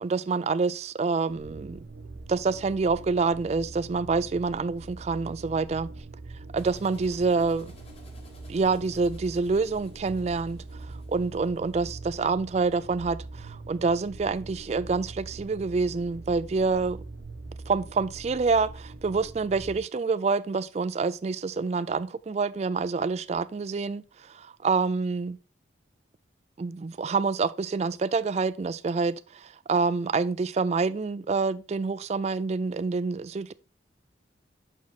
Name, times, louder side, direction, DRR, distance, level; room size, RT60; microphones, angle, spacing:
voice 1, 0.0-1.8 2.3-5.9 6.5-7.7 8.5-17.0 17.7-25.4 26.6-33.5, right 4 dB, 35° right, 0.3 m, -27 dB
sound 1, 1.3-19.8, right 3 dB, 65° right, 0.8 m, -43 dB
sound 2, 6.6-11.9, left 1 dB, 30° left, 1.2 m, -54 dB
6.3 x 5.9 x 4.0 m
head